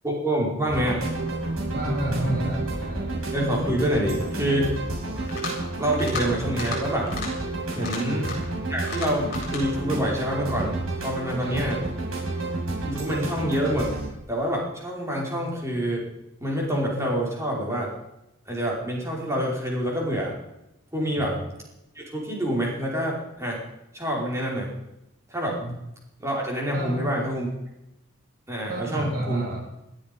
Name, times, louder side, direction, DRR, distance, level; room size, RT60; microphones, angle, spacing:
voice 1, 0.0-1.0 3.3-4.7 5.8-7.1 7.7-8.3 8.7-11.8 12.8-13.9 14.3-16.0 16.4-17.9 18.5-20.3 20.9-21.3 21.9-23.6 23.9-24.7 25.3-25.6 26.2-27.5 28.5-29.4, equal, 15° right, -2 dB, 5.1 m, -27 dB
sound 1, 0.7-14.1, right 2 dB, 85° right, 6.0 m, -30 dB
voice 2, 1.7-3.1 7.7-8.2 11.4-11.8 21.2-21.4 25.6-25.7 26.7-27.1 28.7-29.6, right 1 dB, 45° right, -5 dB, 3.8 m, -30 dB
sound 2, 5.2-5.6 5.9-6.2 6.5-6.8 7.1-7.3 7.7-8.5 8.8-9.6, left 4 dB, 45° left, 7.5 m, -34 dB
20.5 x 13.0 x 5.4 m, 0.87 s
head